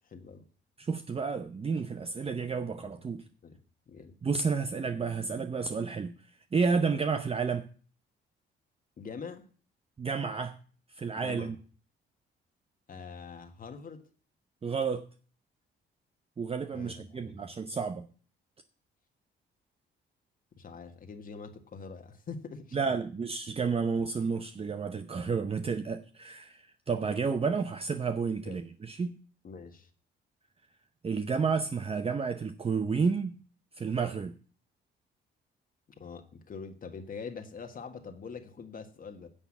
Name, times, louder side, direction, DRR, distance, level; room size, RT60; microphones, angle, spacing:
voice 1, 0.0-0.4 2.8-2.9 3.4-3.6 3.9-4.1 9.0-9.4 11.1-11.5 12.9-14.0 16.7-17.4 20.6-22.8 28.4-28.6 29.4-29.9 36.0-39.3, left 5 dB, 45° left, 1.5 m, -44 dB
voice 2, 0.8-3.2 4.2-6.2 6.5-7.7 10.0-10.6 10.9-11.6 14.6-15.1 16.4-18.1 22.7-29.1 31.0-33.4 33.7-34.3, right 5 dB, 30° right, 0.7 m, -31 dB
10.0 x 7.0 x 7.3 m
cardioid pair, 90°, 20 cm